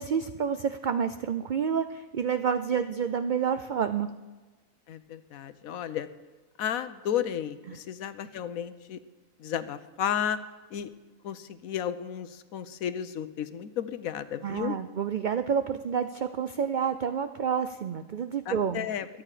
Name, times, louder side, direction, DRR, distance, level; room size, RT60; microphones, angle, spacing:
voice 1, 0.0-4.1 7.7-7.8 14.4-18.8, right 7 dB, 65° right, 10 dB, 0.4 m, -29 dB
voice 2, 4.9-6.1 6.6-9.0 9.4-10.4 10.7-10.9 11.2-14.8 18.5-19.1, left 9 dB, 85° left, 12 dB, 1.2 m, -33 dB
22.5 x 8.9 x 4.9 m, 1.2 s
omnidirectional pair, 1.4 m